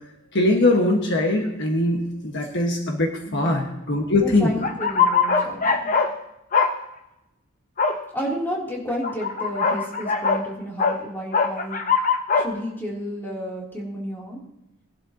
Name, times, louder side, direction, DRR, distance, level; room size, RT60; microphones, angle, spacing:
voice 1, 0.3-4.5, left 2 dB, 50° left, 0 dB, 1.4 m, -21 dB
voice 2, 3.2-3.6 4.2-5.9 8.1-11.9 12.3-14.4, equal, 10° left, -4 dB, 2.9 m, -31 dB
sound 1, 4.6-6.1 6.5-6.7 7.8-8.0 9.0-10.4 10.8-11.0 11.3-12.5, left 5 dB, 35° left, 0.8 m, -21 dB
20.0 x 11.5 x 2.8 m, 0.89 s
head